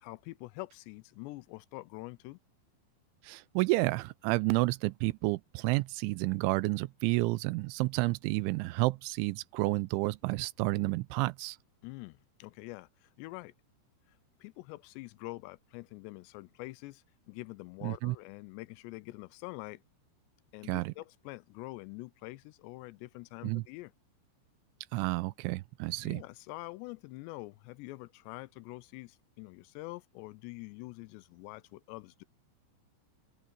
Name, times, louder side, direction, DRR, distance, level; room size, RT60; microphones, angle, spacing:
voice 1, 0.0-2.4 11.8-13.5 14.1-19.8 20.5-23.9 26.0-32.2, left 21 dB, 85° left, 2.5 m, -45 dB
voice 2, 3.2-11.6 17.8-18.2 20.7-20.9 23.4-23.6 24.9-26.2, right 22 dB, 90° right, 3.0 m, -30 dB
open air
omnidirectional pair, 5.3 m